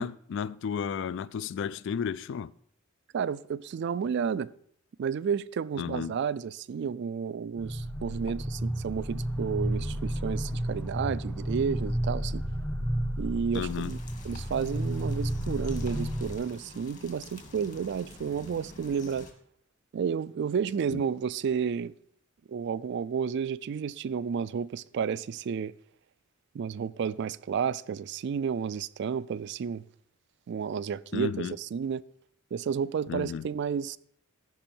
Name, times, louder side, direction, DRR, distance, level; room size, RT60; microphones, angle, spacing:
voice 1, 0.0-2.5 5.8-6.1 13.5-13.9 20.9-21.0 31.1-31.5 33.1-33.4, left 7 dB, 60° left, 0.3 m, -33 dB
voice 2, 3.1-4.5 5.0-12.4 13.2-14.0 14.2-19.3 19.9-21.9 22.5-25.7 26.5-29.8 30.5-32.0 32.5-34.0, right 6 dB, 55° right, 0.3 m, -31 dB
sound 1, 7.6-16.4, equal, 5° left, 0.5 m, -32 dB
sound 2, 13.5-19.3, left 2 dB, 40° left, 1.5 m, -48 dB
14.0 x 5.4 x 4.4 m
head